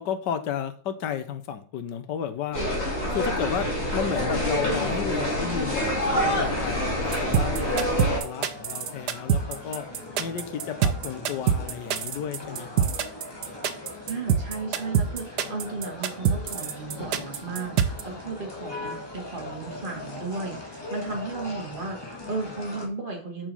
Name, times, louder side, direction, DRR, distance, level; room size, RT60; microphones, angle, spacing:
voice 1, 0.0-2.6 3.1-9.8 10.2-12.9, left 8 dB, 85° left, 10 dB, 1.5 m, -33 dB
sound 1, 2.5-8.2, equal, 40° left, 2.7 m, -27 dB
sound 2, 3.5-22.9, left 2 dB, 15° left, 2.0 m, -39 dB
sound 3, 7.1-18.0, right 8 dB, 75° right, 1.4 m, -24 dB
voice 2, 14.1-23.5, right 3 dB, 30° right, 0 dB, 2.3 m, -34 dB
6.8 x 6.0 x 5.4 m, 0.43 s
omnidirectional pair, 1.8 m